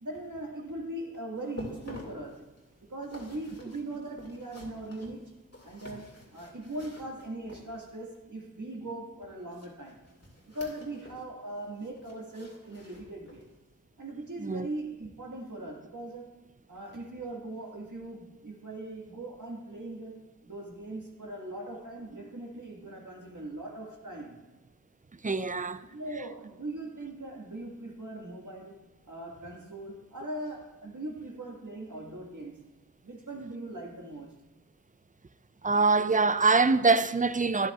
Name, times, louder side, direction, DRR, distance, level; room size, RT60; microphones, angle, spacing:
voice 1, 0.0-2.5 2.9-5.4 5.6-10.0 10.4-13.5 14.0-16.4 16.7-24.4 25.6-28.8 29.1-32.6 33.0-34.4, right 1 dB, 60° right, 1.8 m, -40 dB
sound 1, 1.4-8.1 9.5-11.3 11.6-13.6 14.0-14.1 14.7-14.8, left 2 dB, 45° left, 2.1 m, -49 dB
voice 2, 25.2-25.8 35.6-37.7, right 4 dB, 25° right, 0.4 m, -24 dB
12.0 x 10.0 x 2.4 m
wide cardioid pair, 45°, 35 cm